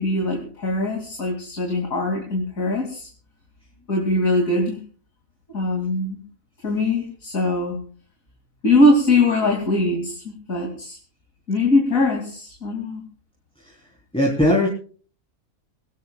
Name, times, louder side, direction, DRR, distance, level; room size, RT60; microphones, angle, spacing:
voice 1, 0.0-3.1 3.9-4.8 5.5-6.2 6.6-7.8 8.6-11.0 11.5-13.0, left 2 dB, 70° left, 0 dB, 3.2 m, -21 dB
voice 2, 14.1-14.7, left 1 dB, 5° left, -2 dB, 3.7 m, -19 dB
23.0 x 18.0 x 2.4 m, 0.41 s
omnidirectional pair, 1.5 m